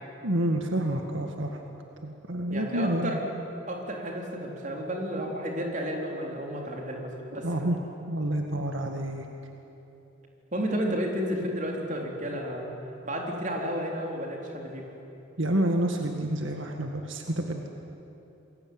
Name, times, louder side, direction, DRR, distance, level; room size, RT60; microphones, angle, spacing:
voice 1, 0.2-1.6 2.0-3.2 7.4-7.8 8.1-9.3 15.4-17.7, right 1 dB, 75° right, 3 dB, 1.9 m, -28 dB
voice 2, 2.5-3.3 3.7-7.5 10.5-12.7 13.0-14.9, equal, 40° right, 0 dB, 4.1 m, -32 dB
28.0 x 22.0 x 9.6 m, 3.0 s
head